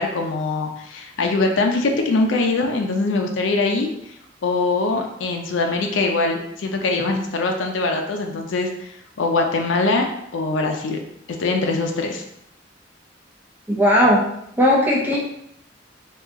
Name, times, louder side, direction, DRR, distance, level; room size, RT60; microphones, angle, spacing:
voice 1, 0.0-3.9 4.4-11.0 11.4-12.2, left 3 dB, 85° left, 3 dB, 0.4 m, -22 dB
voice 2, 13.7-14.2 14.6-15.2, equal, 10° right, -4 dB, 0.7 m, -16 dB
2.8 x 2.3 x 3.5 m, 0.74 s
head